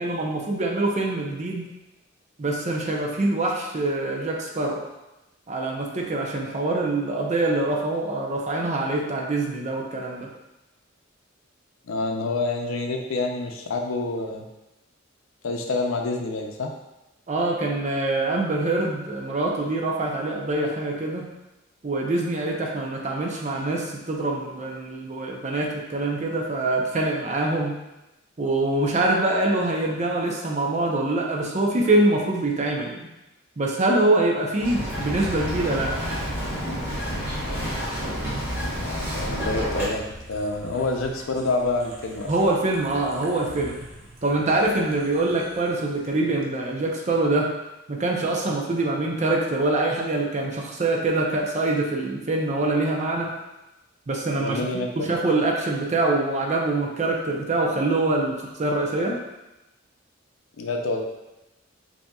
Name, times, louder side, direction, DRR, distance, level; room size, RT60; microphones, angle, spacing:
voice 1, 0.0-1.6 2.4-4.8 5.5-10.3 17.3-21.3 21.8-27.8 28.4-33.1 33.6-36.4 42.3-43.8 44.2-47.5 47.9-53.3 54.1-59.2, right 2 dB, 35° right, 0 dB, 0.6 m, -24 dB
voice 2, 11.9-14.4 15.4-16.7 38.8-42.3 54.4-54.9 60.6-61.0, left 3 dB, 85° left, 3 dB, 0.5 m, -27 dB
Bird vocalization bird call bird song, 34.6-39.9, equal, 10° right, 1.1 m, -29 dB
sound 1, 34.9-46.1 46.4-46.5, right 1 dB, 75° right, 0.7 m, -43 dB
5.3 x 2.8 x 2.3 m, 0.98 s
head